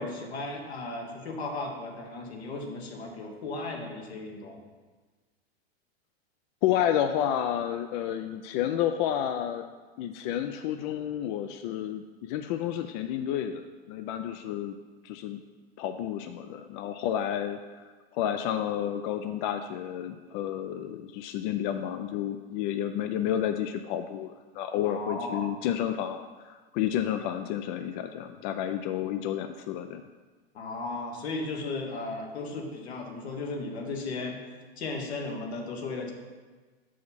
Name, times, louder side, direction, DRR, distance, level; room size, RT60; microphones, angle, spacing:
voice 1, 0.0-4.6 24.8-25.5 30.5-34.4 34.8-36.1, left 3 dB, 80° left, 1 dB, 1.4 m, -35 dB
voice 2, 6.6-9.6 10.0-13.6 13.9-14.8 15.0-15.4 15.8-17.8 18.1-30.0, left 10 dB, 50° left, 7 dB, 0.4 m, -30 dB
6.9 x 4.9 x 4.1 m, 1.4 s
hypercardioid pair, 110°, 32 cm